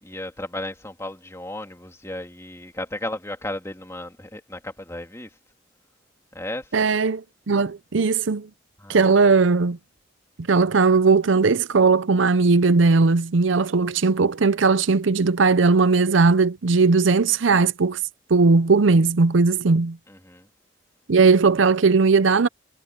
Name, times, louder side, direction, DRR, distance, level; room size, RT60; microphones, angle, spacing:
voice 1, 0.0-5.3 6.3-6.7 8.8-9.3 20.1-20.5, left 1 dB, 15° left, 2.6 m, -34 dB
voice 2, 6.7-8.5 8.9-9.8 10.5-18.0 18.3-20.0 21.1-22.5, right 4 dB, 75° right, 0.6 m, -18 dB
head